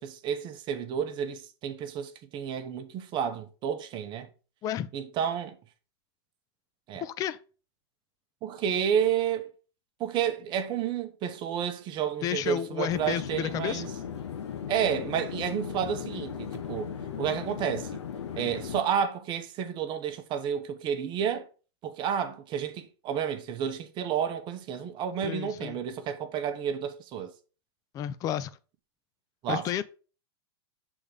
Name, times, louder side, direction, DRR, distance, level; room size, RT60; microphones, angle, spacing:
voice 1, 0.0-4.3 4.9-5.6 6.9-7.0 8.4-9.5 10.0-13.9 14.7-16.9 17.2-18.0 18.4-21.5 21.8-27.3 29.4-29.6, right 8 dB, 35° right, 0.9 m, -31 dB
voice 2, 7.0-7.4 12.2-13.9 25.2-25.8 27.9-28.6 29.5-29.8, left 11 dB, 25° left, 0.4 m, -31 dB
sound 1, 12.9-18.8, left 8 dB, 90° left, 1.0 m, -37 dB
6.4 x 3.6 x 5.0 m
hypercardioid pair, 130°, 14 cm